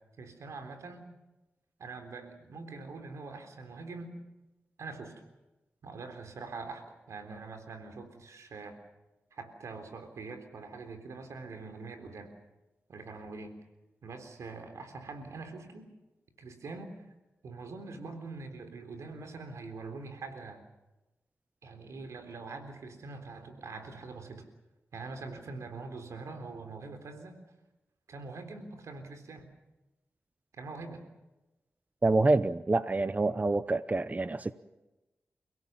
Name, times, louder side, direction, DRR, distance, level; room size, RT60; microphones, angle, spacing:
voice 1, 0.2-1.1 1.8-4.1 4.8-5.1 5.8-8.8 9.3-12.3 12.9-13.6 14.0-15.9 16.4-17.1 17.4-20.6 21.6-24.5 24.9-27.4 28.1-29.5 30.5-31.0, right 3 dB, 90° right, 7 dB, 3.7 m, -44 dB
voice 2, 32.0-34.5, right 2 dB, 30° right, 14 dB, 0.8 m, -27 dB
29.5 x 17.0 x 7.4 m, 1.0 s
cardioid pair, 55°, 5 cm